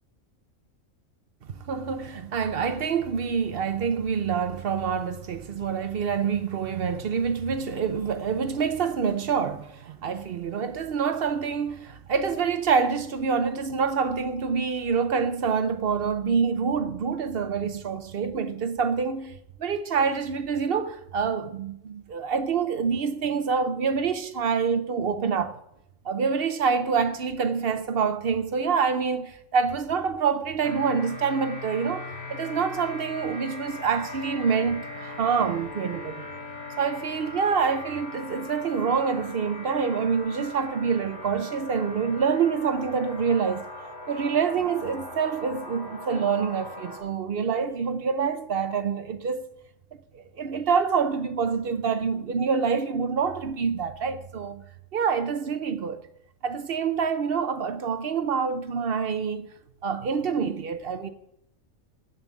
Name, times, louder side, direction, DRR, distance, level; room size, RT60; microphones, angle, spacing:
voice 1, 1.5-25.6 26.0-36.3 36.8-43.7 44.1-49.4 50.1-54.6 54.9-56.0 56.4-59.5 59.8-61.1, right 6 dB, 55° right, 0.8 m, -26 dB
sound 1, 30.6-47.0, left 2 dB, 90° left, 3.9 m, -40 dB
8.4 x 7.0 x 8.2 m
omnidirectional pair, 1.4 m